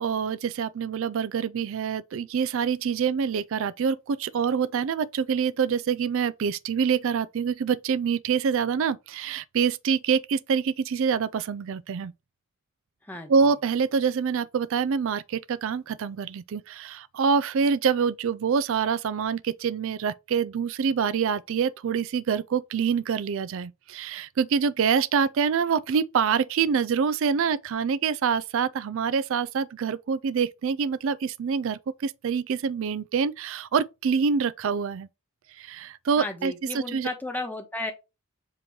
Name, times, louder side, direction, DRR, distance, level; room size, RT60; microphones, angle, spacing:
voice 1, 0.0-12.1 13.3-35.1 35.6-37.1, right 6 dB, 60° right, 0.3 m, -26 dB
voice 2, 36.2-37.9, left 2 dB, 10° left, 1.1 m, -33 dB
7.4 x 3.0 x 4.5 m
head